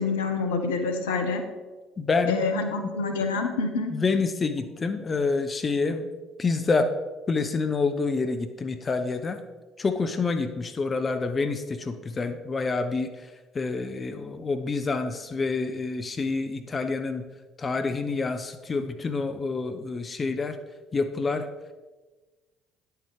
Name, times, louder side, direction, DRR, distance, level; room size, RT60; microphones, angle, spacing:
voice 1, 0.0-1.4 2.3-3.9, left 4 dB, 75° left, 6 dB, 1.1 m, -27 dB
voice 2, 2.0-2.5 3.9-6.1 6.4-6.9 7.3-9.4 9.8-13.3 13.5-17.3 17.6-20.6 20.9-21.5, left 4 dB, 30° left, 8 dB, 0.8 m, -27 dB
10.0 x 8.1 x 4.8 m, 1.2 s
figure-of-eight pair, 55°, 0 cm